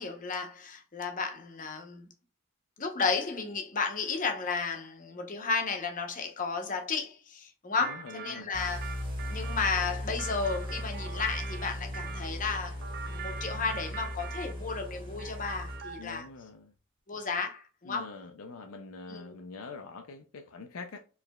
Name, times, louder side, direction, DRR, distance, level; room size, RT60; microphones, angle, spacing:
voice 1, 0.0-2.1 2.8-8.8 9.3-12.8 13.1-16.2 17.1-18.1 19.1-19.3, left 4 dB, 35° left, 0.8 m, -33 dB
voice 2, 7.8-8.5 16.0-16.7 17.8-21.0, left 4 dB, 65° left, 0.5 m, -44 dB
sound 1, 7.8-12.3 12.8-14.9 15.2-16.2, right 7 dB, 45° right, 0.4 m, -43 dB
sound 2, 8.5-16.2, left 1 dB, 20° right, 1.7 m, -38 dB
4.6 x 3.2 x 2.2 m
head